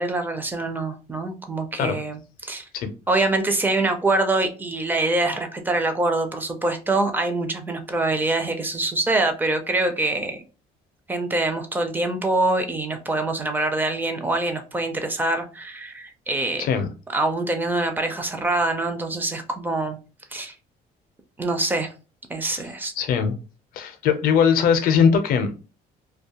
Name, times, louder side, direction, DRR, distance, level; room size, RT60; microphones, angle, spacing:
voice 1, 0.0-2.6 3.1-10.4 11.1-16.7 17.1-20.0 20.3-20.5 21.4-21.9 22.3-22.9, right 2 dB, 10° right, 0.4 m, -24 dB
voice 2, 23.0-23.3 23.7-25.6, left 7 dB, 60° left, 0.5 m, -20 dB
2.4 x 2.3 x 2.8 m
cardioid pair, 160°, 16 cm